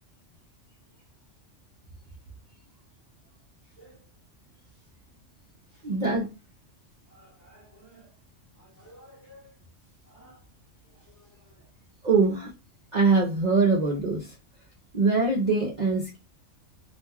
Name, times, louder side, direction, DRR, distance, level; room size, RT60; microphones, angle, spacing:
voice 1, 5.8-6.3 12.0-12.5 12.9-14.3 14.9-16.2, right 3 dB, 50° right, 0.5 m, -23 dB
voice 2, 7.1-8.1 8.6-9.5 10.1-10.4 10.9-11.7, equal, 15° left, 0.8 m, -54 dB
2.4 x 2.2 x 3.3 m
omnidirectional pair, 1.3 m